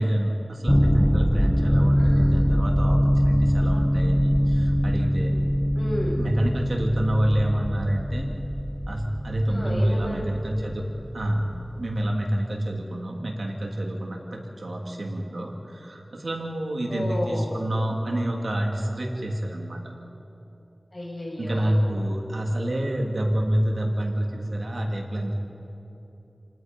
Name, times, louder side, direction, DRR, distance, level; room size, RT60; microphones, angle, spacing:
voice 1, 0.0-5.3 6.2-8.3 8.9-10.9 11.1-11.5 11.8-19.8 21.4-25.4, right 1 dB, 75° right, 0 dB, 3.0 m, -27 dB
sound 1, 0.7-12.0, equal, 5° left, 1.1 m, -23 dB
voice 2, 2.0-2.5 5.7-6.2 9.5-10.4 16.9-17.6 20.9-21.8, left 1 dB, 45° left, -2 dB, 6.5 m, -32 dB
30.0 x 19.0 x 5.4 m, 2.9 s
wide cardioid pair, 50°, 0 cm